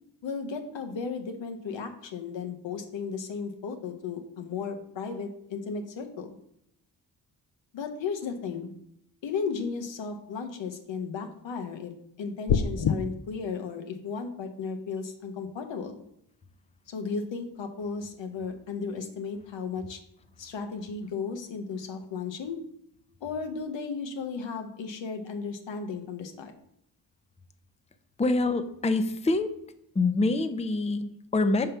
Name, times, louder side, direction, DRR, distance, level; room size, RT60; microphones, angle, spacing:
voice 1, 0.2-6.3 7.7-8.7 9.2-11.9 12.2-15.9 16.9-20.0 20.4-22.6 23.2-26.5, left 5 dB, 85° left, 5 dB, 0.9 m, -35 dB
sound 1, 12.5-13.0, left 7 dB, 65° left, 0.6 m, -24 dB
voice 2, 28.2-29.5 29.9-31.7, left 2 dB, 15° left, 9 dB, 0.5 m, -25 dB
5.6 x 3.6 x 5.5 m, 0.75 s
cardioid pair, 55°, 44 cm